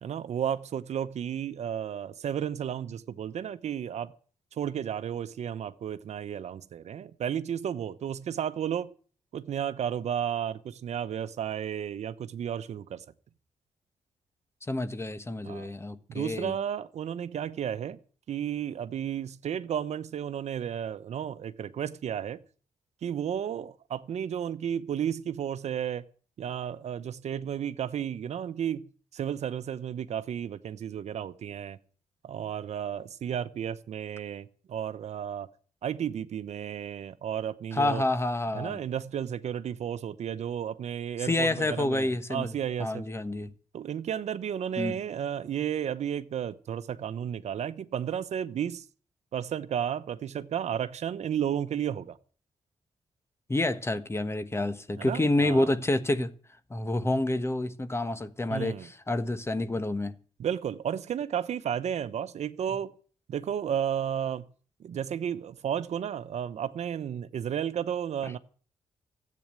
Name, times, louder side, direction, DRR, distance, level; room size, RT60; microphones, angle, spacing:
voice 1, 0.0-4.1 4.6-8.9 9.3-13.0 15.4-15.7 16.1-18.0 18.3-22.4 23.0-26.0 26.4-28.8 29.1-31.8 32.2-35.5 35.8-38.0 38.5-43.1 43.7-48.8 49.3-52.2 55.0-55.7 58.5-58.9 60.4-62.9 63.3-64.5 64.8-68.4, right 9 dB, 75° right, 0.9 m, -33 dB
voice 2, 14.7-16.5 37.7-38.8 41.2-42.5 42.8-43.5 44.8-45.0 53.5-56.3 56.7-60.1 68.2-68.3, left 2 dB, 20° left, 1.3 m, -28 dB
14.0 x 8.6 x 9.0 m
cardioid pair, 75°, 12 cm